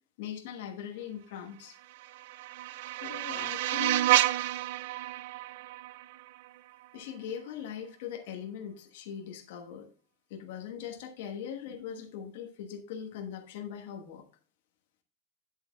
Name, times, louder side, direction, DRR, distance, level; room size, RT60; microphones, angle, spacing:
voice 1, 0.2-1.8 3.0-4.1 6.9-9.9 10.3-14.2, left 8 dB, 60° left, 3 dB, 1.2 m, -41 dB
sound 1, 1.8-6.9, right 15 dB, 60° right, 0.3 m, -30 dB
8.4 x 7.6 x 2.2 m, 0.41 s
supercardioid pair, 170°, 0 cm